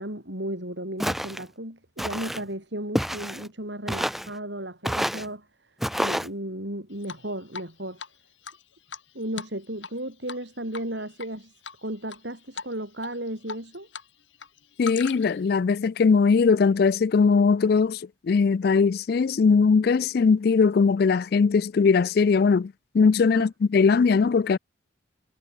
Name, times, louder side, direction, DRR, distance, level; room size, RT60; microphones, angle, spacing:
voice 1, 0.0-8.0 9.1-11.5 11.8-13.9 23.3-23.5, right 1 dB, 60° right, 7.9 m, -35 dB
Walk footsteps, 1.0-1.4 2.0-2.4 2.9-3.5 3.9-4.3 4.8-5.3 5.8-6.3, equal, ahead, 1.1 m, -28 dB
Drip, 7.0-7.7 8.0-8.1 8.4-10.0 10.3-10.4 10.7-11.3 11.6-12.2 12.5-12.7 13.0-14.1 14.3-15.5, left 5 dB, 70° left, 6.6 m, -39 dB
voice 2, 14.8-24.6, left 5 dB, 50° left, 0.3 m, -20 dB
head